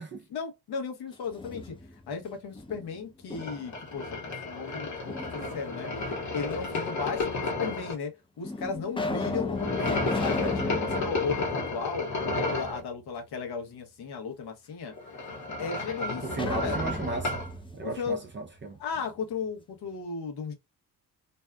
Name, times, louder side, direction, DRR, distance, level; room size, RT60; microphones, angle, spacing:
voice 1, 0.3-5.9 6.3-12.1 12.4-14.9 15.6-16.8 17.8-18.2 18.8-20.5, left 5 dB, 90° left, 1.0 m, -35 dB
sound 1, 1.1-2.1 2.5-3.8 5.1-5.9 6.7-6.8 7.7-7.8 8.4-12.5 12.8-12.9 16.3-19.1, left 2 dB, 15° left, 0.5 m, -35 dB
sound 2, 3.4-7.9 9.6-12.8 14.9-17.5, left 3 dB, 50° left, 0.9 m, -32 dB
voice 2, 16.2-17.4 17.7-18.8, right 3 dB, 30° right, 0.5 m, -35 dB
2.7 x 2.3 x 2.2 m
cardioid pair, 115°, 38 cm